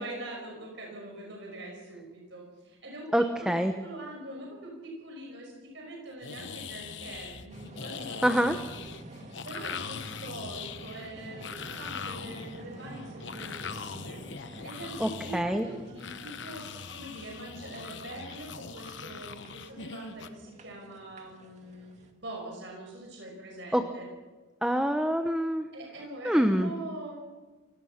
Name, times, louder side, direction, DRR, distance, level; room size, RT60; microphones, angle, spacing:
voice 1, 0.0-3.5 3.8-24.1 25.7-27.2, right 2 dB, 60° right, -1 dB, 5.8 m, -43 dB
voice 2, 3.1-3.7 8.2-8.6 15.0-15.7 23.7-23.8 24.6-25.7 26.2-26.7, equal, 5° right, 7 dB, 0.9 m, -25 dB
sound 1, 6.2-20.3, left 6 dB, 60° left, 1.0 m, -42 dB
sound 2, 7.5-22.1, right 1 dB, 35° right, 2.1 m, -48 dB
28.5 x 17.5 x 5.9 m, 1.3 s
head